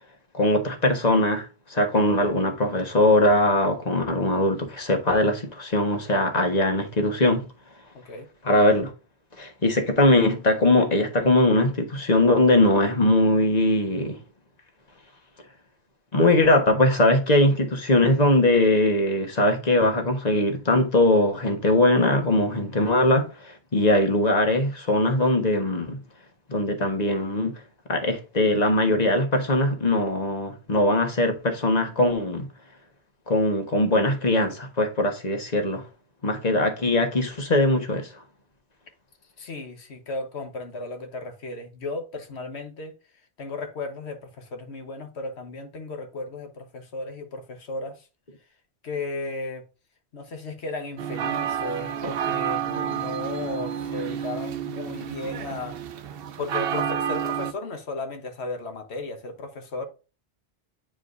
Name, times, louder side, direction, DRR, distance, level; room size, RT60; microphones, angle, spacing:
voice 1, 0.3-7.5 8.4-8.9 9.4-14.2 16.1-26.0 26.5-27.6 27.9-32.5 33.3-35.8 36.2-38.1, left 1 dB, 40° left, 1.4 m, -21 dB
voice 2, 7.9-8.3 39.4-43.0 43.4-48.0 48.8-49.6 50.1-55.8 56.4-59.9, left 2 dB, 90° left, 1.5 m, -35 dB
sound 1, 51.0-57.5, right 9 dB, 65° right, 0.8 m, -30 dB
8.7 x 4.8 x 2.6 m
omnidirectional pair, 1.1 m